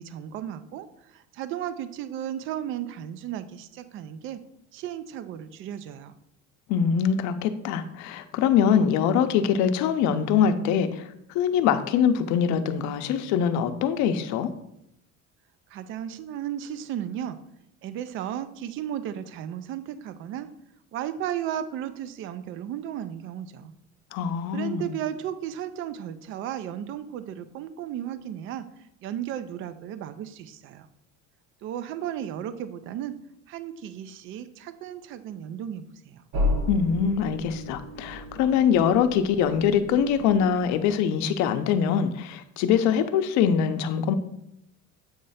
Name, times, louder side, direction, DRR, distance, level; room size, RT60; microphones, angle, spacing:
voice 1, 0.0-4.4 4.7-6.2 15.7-17.4 17.8-20.5 20.9-23.7 24.5-28.7 29.0-30.9 31.6-33.2 33.5-36.2, right 10 dB, 45° right, 12 dB, 0.4 m, -34 dB
voice 2, 6.7-14.5 24.1-25.0 36.7-44.1, left 8 dB, 65° left, 9 dB, 0.6 m, -23 dB
sound 1, 36.3-41.0, left 2 dB, 80° right, 1.4 m, -33 dB
7.9 x 3.2 x 5.5 m, 0.80 s
cardioid pair, 175°, 30 cm